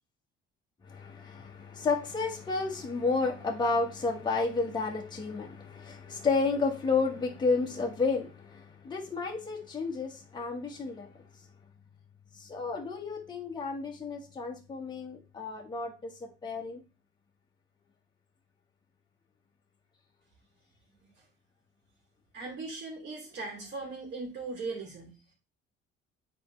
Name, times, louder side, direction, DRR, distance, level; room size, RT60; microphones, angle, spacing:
voice 1, 0.9-8.3 8.8-11.1 12.5-15.9 16.4-16.8, left 4 dB, 20° left, -1 dB, 1.4 m, -31 dB
voice 2, 22.3-25.2, right 3 dB, 55° right, -2 dB, 3.0 m, -39 dB
8.3 x 4.5 x 3.2 m, 0.31 s
cardioid pair, 125°, 21 cm